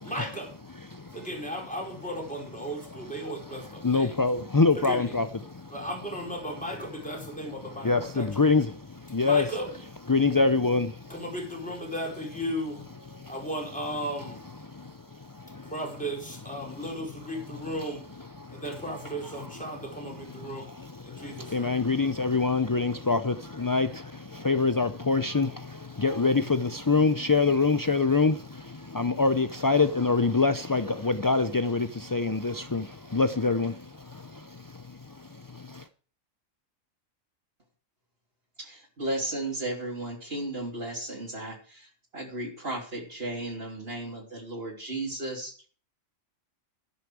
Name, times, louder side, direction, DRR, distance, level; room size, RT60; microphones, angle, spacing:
voice 1, 0.0-4.2 4.7-5.2 5.7-8.4 9.1-9.8 11.1-21.9, equal, 5° left, 4.7 m, -36 dB
voice 2, 3.8-5.7 7.8-9.5 10.1-11.1 13.2-13.3 14.7-15.7 18.4-18.6 20.8-35.8, left 4 dB, 30° left, 0.3 m, -26 dB
voice 3, 38.6-41.9 42.1-45.7, right 1 dB, 45° right, 3.4 m, -34 dB
11.5 x 11.0 x 4.8 m
omnidirectional pair, 1.4 m